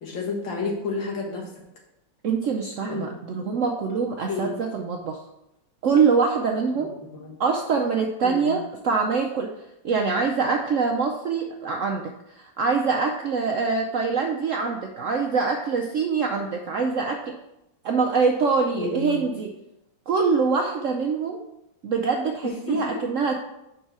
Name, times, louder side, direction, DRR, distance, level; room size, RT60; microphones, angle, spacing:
voice 1, 0.0-1.5 2.8-3.1 4.3-4.6 7.1-7.4 8.2-8.6 18.7-19.4 22.4-22.8, left 3 dB, 85° left, -2 dB, 2.3 m, -30 dB
voice 2, 2.2-5.2 5.8-6.9 7.4-9.5 9.8-17.3 17.8-19.5 20.1-21.4 21.8-23.4, right 5 dB, 70° right, 2 dB, 0.7 m, -24 dB
5.4 x 4.7 x 6.0 m, 0.87 s
omnidirectional pair, 2.0 m